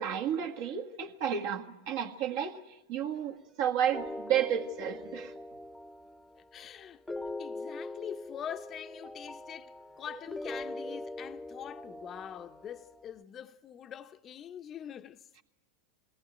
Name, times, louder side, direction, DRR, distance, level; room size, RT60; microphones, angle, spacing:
voice 1, 0.0-5.3, right 9 dB, 60° right, 1.8 m, -32 dB
sound 1, 3.1-3.2 3.5-3.6 3.9-4.0 4.4-5.3 10.1-11.0, right 4 dB, 20° right, 1.1 m, -50 dB
sound 2, 3.9-13.1, left 2 dB, 5° left, 0.9 m, -42 dB
voice 2, 6.4-7.0 7.4-15.2, left 9 dB, 35° left, 0.7 m, -44 dB
21.5 x 18.0 x 9.1 m
hypercardioid pair, 95°, 0 cm